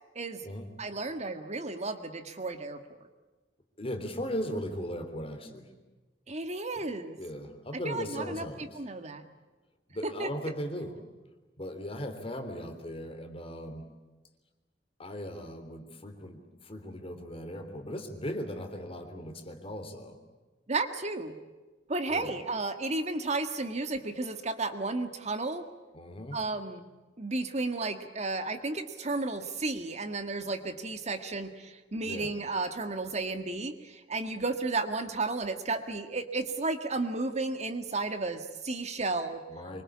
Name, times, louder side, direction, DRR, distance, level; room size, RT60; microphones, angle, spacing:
voice 1, 0.8-2.8 6.3-7.2 7.8-8.5 8.8-9.2 10.0-10.3 20.7-21.4 21.9-25.6 26.3-26.8 27.2-39.4, right 3 dB, 40° right, 8 dB, 1.8 m, -33 dB
voice 2, 3.8-5.7 6.8-6.9 7.2-8.8 9.9-11.0 11.6-13.9 15.0-20.2 22.1-22.4 25.9-26.4 32.0-32.3 39.5-39.8, equal, 35° left, 6 dB, 3.5 m, -38 dB
25.5 x 24.0 x 8.6 m, 1.2 s
head